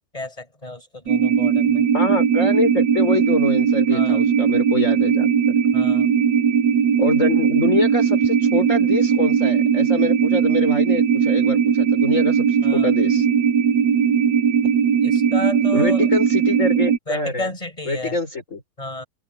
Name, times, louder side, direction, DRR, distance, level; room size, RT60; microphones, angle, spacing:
voice 1, 0.1-1.9 3.9-4.2 5.7-6.1 12.6-12.9 15.0-16.4 17.1-18.2 18.8-19.0, left 2 dB, 15° left, 6.2 m, -31 dB
sound 1, 1.1-17.0, right 7 dB, 65° right, 1.4 m, -18 dB
voice 2, 1.9-5.3 7.0-13.3 15.7-17.5 17.9-18.6, left 2 dB, 40° left, 5.4 m, -25 dB
omnidirectional pair, 2.1 m